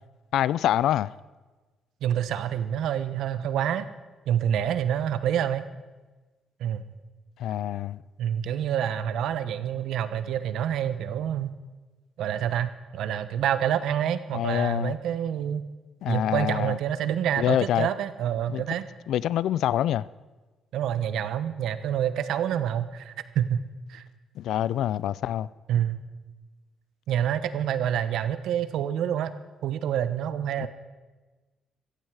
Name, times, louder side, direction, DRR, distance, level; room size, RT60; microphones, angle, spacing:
voice 1, 0.3-1.1 7.4-8.0 14.3-14.9 16.0-16.8 17.4-17.9 18.5-18.6 19.1-20.1 24.4-25.5 30.6-30.7, left 11 dB, 80° left, 0.4 m, -26 dB
voice 2, 2.0-3.9 4.3-5.6 6.6-6.8 8.2-11.5 12.2-15.6 16.1-18.8 20.7-23.6 23.9-24.0 25.7-26.0 27.1-29.3 29.6-30.7, right 9 dB, 80° right, 0.9 m, -27 dB
16.5 x 14.5 x 4.8 m
cardioid pair, 90°, 0 cm